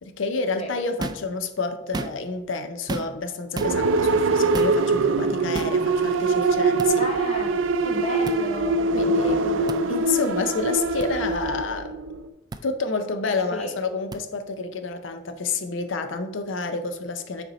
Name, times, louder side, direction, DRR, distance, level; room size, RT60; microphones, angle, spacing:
voice 1, 0.0-7.1 8.9-9.4 9.9-11.9 12.6-17.4, left 4 dB, 75° left, 0.6 m, -29 dB
sound 1, 1.0-1.3 1.8-2.4 2.9-3.3 3.5-3.7 4.5-4.8 5.5-5.8 6.8-6.9 8.2-8.4 9.7-9.8 11.0-11.1 12.5-12.6 14.1-14.2, right 2 dB, 20° right, 0.3 m, -32 dB
sound 2, 3.6-12.3, right 3 dB, 85° right, 0.4 m, -23 dB
voice 2, 7.0-9.9 13.5-13.7, left 1 dB, 35° left, 1.2 m, -34 dB
6.7 x 4.3 x 4.0 m
head